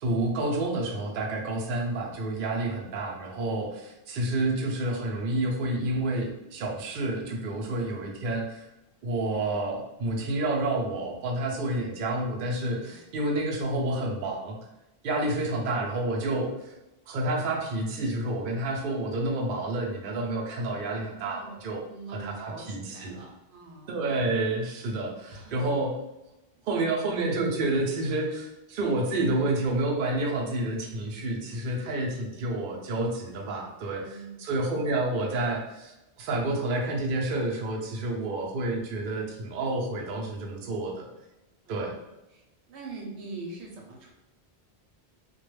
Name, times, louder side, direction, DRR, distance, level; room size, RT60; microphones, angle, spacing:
voice 1, 0.0-8.7 9.0-14.6 15.0-16.7 17.1-21.8 22.1-23.2 23.9-25.9 26.6-41.1 41.7-41.9, right 2 dB, 60° right, 0 dB, 0.6 m, -29 dB
voice 2, 21.0-21.6 21.8-24.1 25.2-25.8 34.0-34.4 41.6-42.0 42.3-44.1, right 3 dB, 85° right, 0 dB, 0.9 m, -44 dB
2.2 x 2.2 x 3.0 m, 0.93 s
omnidirectional pair, 1.1 m